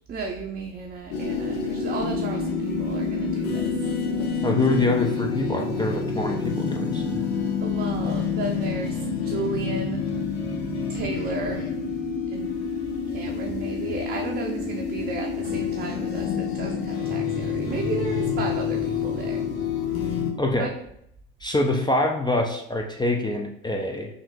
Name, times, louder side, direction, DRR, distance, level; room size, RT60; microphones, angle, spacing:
voice 1, 0.1-3.7 7.6-10.0 10.9-11.7 12.3-12.5 13.1-19.4 20.5-20.7, right 4 dB, 30° right, 1 dB, 0.6 m, -33 dB
sound 1, 1.1-20.3, left 5 dB, 85° left, 0.7 m, -28 dB
voice 2, 4.4-7.2 20.4-20.7 21.4-24.1, left 2 dB, 15° left, 2 dB, 0.5 m, -25 dB
3.6 x 2.5 x 3.7 m, 0.74 s
hypercardioid pair, 65°, 30 cm